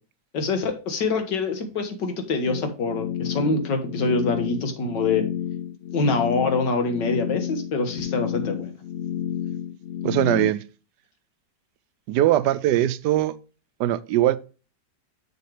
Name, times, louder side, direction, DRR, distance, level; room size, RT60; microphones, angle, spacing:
voice 1, 0.3-5.3 5.9-8.7, left 3 dB, 90° left, 2.1 m, -25 dB
sound 1, 2.4-10.5, left 10 dB, 75° left, 0.6 m, -30 dB
voice 2, 10.0-10.6 12.1-13.4 13.8-14.4, right 13 dB, 80° right, 1.2 m, -21 dB
7.1 x 6.9 x 3.2 m
omnidirectional pair, 1.9 m